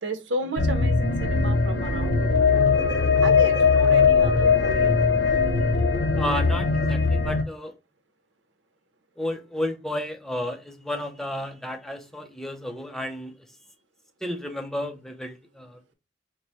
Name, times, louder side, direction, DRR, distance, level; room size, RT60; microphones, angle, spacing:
voice 1, 0.0-2.5 3.2-5.2, right 1 dB, 85° right, 0.8 m, -33 dB
sound 1, 0.6-7.4, left 5 dB, 75° left, 0.9 m, -20 dB
voice 2, 6.2-7.7 9.2-13.3 14.2-15.9, left 1 dB, ahead, 0.6 m, -32 dB
4.7 x 2.2 x 4.0 m
head